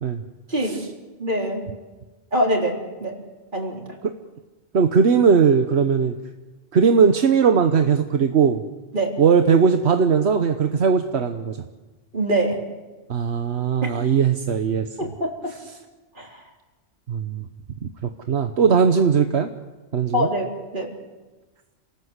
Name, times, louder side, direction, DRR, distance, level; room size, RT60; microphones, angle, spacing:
voice 1, 1.2-1.7 2.3-3.2 3.5-3.8 8.9-9.1 12.1-12.6 13.8-13.9 15.0-15.3 16.2-16.3 20.1-20.9, right 1 dB, 50° right, 0 dB, 4.1 m, -24 dB
voice 2, 4.7-6.1 6.7-8.6 9.2-11.6 13.1-15.1 17.1-17.5 18.3-19.5 19.9-20.3, right 6 dB, 75° right, 6 dB, 1.3 m, -19 dB
28.5 x 19.0 x 8.2 m, 1.2 s
omnidirectional pair, 1.1 m